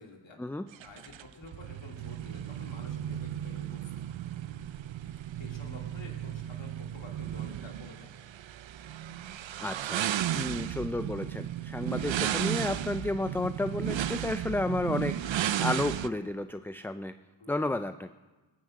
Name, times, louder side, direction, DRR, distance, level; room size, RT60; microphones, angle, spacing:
voice 1, 0.0-0.4 0.8-3.9 5.4-8.3 17.4-17.6, left 3 dB, 70° left, 1 dB, 2.5 m, -50 dB
sound 1, 0.7-16.1, right 11 dB, 75° right, 0.6 m, -34 dB
voice 2, 9.6-10.1 10.3-15.2 15.6-17.1 17.5-18.1, left 2 dB, 5° left, 10 dB, 0.4 m, -32 dB
18.5 x 6.4 x 7.6 m, 1.2 s
cardioid pair, 40°, 47 cm